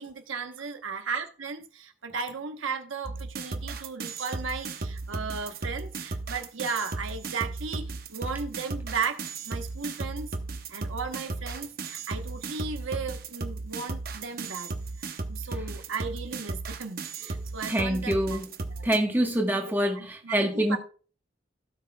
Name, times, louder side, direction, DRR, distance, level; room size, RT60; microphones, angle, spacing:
voice 1, 0.0-10.3 10.7-14.7 15.0-18.4 18.7-18.9 19.6-20.8, right 5 dB, 90° right, 1.0 m, -35 dB
sound 1, 3.0-19.0, right 3 dB, 50° right, 0.8 m, -35 dB
voice 2, 17.7-18.5 18.8-20.8, right 1 dB, 10° right, 1.2 m, -26 dB
16.5 x 5.9 x 2.3 m
head